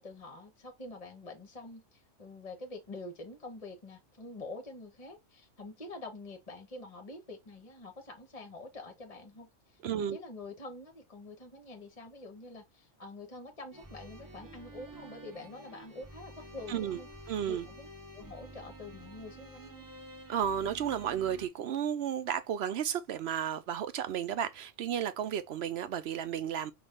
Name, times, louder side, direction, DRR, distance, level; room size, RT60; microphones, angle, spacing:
voice 1, 0.0-17.1 17.5-17.9 18.1-19.9, left 2 dB, 35° left, 0.9 m, -46 dB
voice 2, 9.8-10.2 16.7-17.0 17.3-17.7 20.3-26.7, right 9 dB, 65° right, 0.7 m, -33 dB
sound 1, 13.7-21.5, right 1 dB, 20° right, 0.8 m, -50 dB
5.4 x 2.5 x 3.5 m
omnidirectional pair, 1.3 m